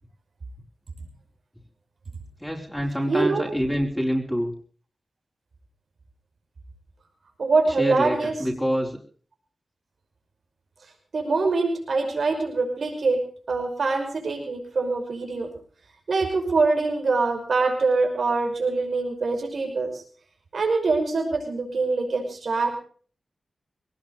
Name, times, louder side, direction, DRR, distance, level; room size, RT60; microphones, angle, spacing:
voice 1, 2.4-4.5 7.6-9.0, equal, 5° left, -2 dB, 4.3 m, -26 dB
voice 2, 3.1-3.4 7.4-8.3 11.1-13.2 13.5-15.5 16.1-20.0 20.5-22.8, right 3 dB, 75° right, 3 dB, 5.5 m, -24 dB
21.0 x 18.5 x 3.2 m, 0.43 s
cardioid pair, 50°, 0 cm